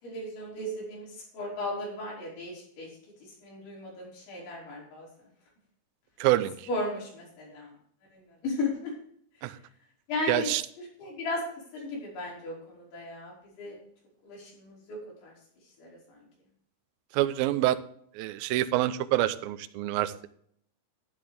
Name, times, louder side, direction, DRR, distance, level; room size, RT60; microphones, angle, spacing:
voice 1, 0.0-2.9 3.4-5.1 6.7-7.7 8.1-8.9 10.1-10.5 10.8-11.4 11.7-13.8 14.2-15.3 15.8-16.2, left 2 dB, 85° left, -4 dB, 7.7 m, -36 dB
voice 2, 6.2-6.7 9.4-9.6 10.3-10.6 17.1-17.8 18.1-20.3, right 15 dB, 90° right, 10 dB, 2.1 m, -26 dB
12.5 x 9.9 x 3.5 m, 0.64 s
omnidirectional pair, 5.2 m